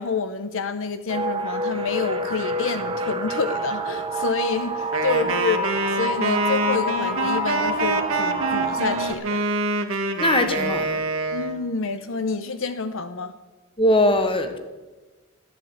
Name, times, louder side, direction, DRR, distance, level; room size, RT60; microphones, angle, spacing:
voice 1, 0.0-9.5 11.3-13.3, left 4 dB, 65° left, 10 dB, 0.7 m, -28 dB
sound 1, 1.1-9.1, equal, 25° right, 1.3 m, -27 dB
Wind instrument woodwind instrument, 4.9-11.6, right 3 dB, 75° right, 1.7 m, -26 dB
voice 2, 10.2-11.0 13.8-14.6, left 1 dB, 25° left, 8 dB, 1.4 m, -20 dB
14.0 x 11.0 x 7.9 m, 1.2 s
head